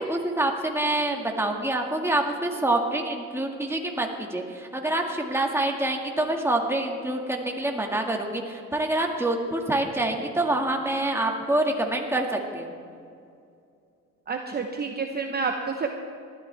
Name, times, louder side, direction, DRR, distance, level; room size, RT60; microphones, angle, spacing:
voice 1, 0.0-12.7, right 1 dB, 10° right, 1 dB, 1.9 m, -26 dB
voice 2, 14.3-15.9, right 4 dB, 30° right, 3 dB, 0.9 m, -29 dB
19.0 x 13.0 x 3.4 m, 2.5 s
cardioid pair, 90°, 30 cm